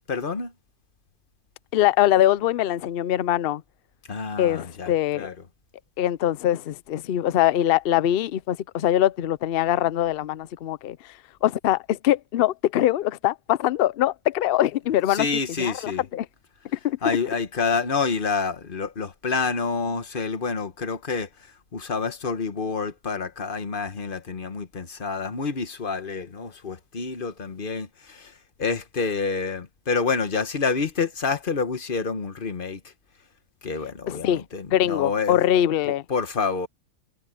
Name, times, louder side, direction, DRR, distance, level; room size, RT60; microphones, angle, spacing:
voice 1, 0.1-0.5 4.1-5.3 15.1-16.0 17.0-21.3 21.7-32.9 33.6-35.4 35.9-36.7, left 4 dB, 40° left, 1.3 m, -28 dB
voice 2, 1.7-3.6 4.4-5.3 6.0-11.0 11.4-15.3 15.6-16.3 16.7-17.0 34.1-34.4 34.7-36.0, left 12 dB, 60° left, 0.6 m, -23 dB
omnidirectional pair, 1.5 m